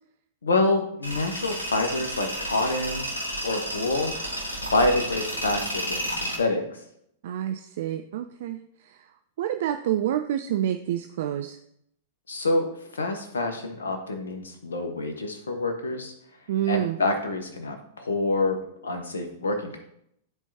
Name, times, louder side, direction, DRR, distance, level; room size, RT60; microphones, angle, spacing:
voice 1, 0.4-4.1 4.6-6.8 12.3-12.7 12.9-16.1 16.7-18.6 18.8-19.8, left 2 dB, 70° left, 5 dB, 1.4 m, -27 dB
Tools, 1.0-6.4, right 1 dB, 90° left, 1.7 m, -32 dB
voice 2, 7.2-9.1 9.4-11.6 16.5-17.0, right 11 dB, 55° right, 8 dB, 0.4 m, -28 dB
13.0 x 4.5 x 2.8 m, 0.73 s
figure-of-eight pair, 100°, 0 cm